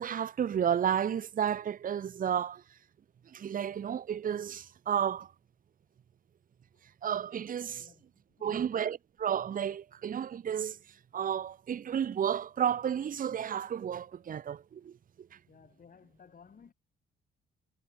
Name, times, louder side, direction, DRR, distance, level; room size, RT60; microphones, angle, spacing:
voice 1, 0.0-2.6 3.3-5.3 7.0-7.9 8.4-10.8 11.1-14.9, right 8 dB, 45° right, 0.8 m, -32 dB
voice 2, 8.4-8.9 15.5-16.7, left 6 dB, 45° left, 7.4 m, -57 dB
cardioid pair, 90°, 20 cm